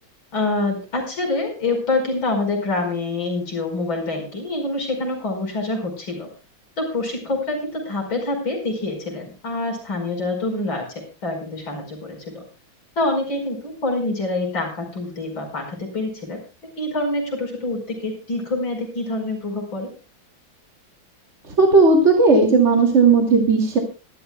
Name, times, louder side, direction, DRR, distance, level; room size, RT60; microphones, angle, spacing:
voice 1, 0.3-6.3 6.8-12.4 13.0-16.4 16.8-19.9, left 2 dB, 80° left, 2 dB, 5.9 m, -26 dB
voice 2, 21.6-23.8, right 4 dB, 35° right, 2 dB, 2.8 m, -15 dB
26.0 x 12.0 x 2.3 m, 0.32 s
omnidirectional pair, 2.1 m